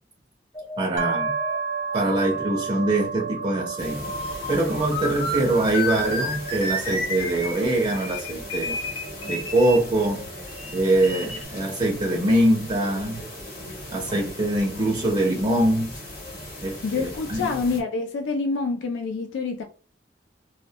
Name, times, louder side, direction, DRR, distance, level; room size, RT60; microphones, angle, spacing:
sound 1, 0.5-9.8 10.5-11.4, left 1 dB, 30° left, 0.6 m, -32 dB
voice 1, 0.8-1.3 1.9-4.0 4.5-8.7 9.2-10.3 10.7-13.2 13.9-15.9 16.6-17.5, right 1 dB, 30° right, 0.4 m, -23 dB
sound 2, 1.0-14.7, right 6 dB, 85° right, 0.5 m, -35 dB
sound 3, 3.8-17.8, left 1 dB, 50° left, 0.9 m, -39 dB
voice 2, 16.8-19.6, left 4 dB, 85° left, 0.3 m, -27 dB
2.2 x 2.1 x 2.7 m
head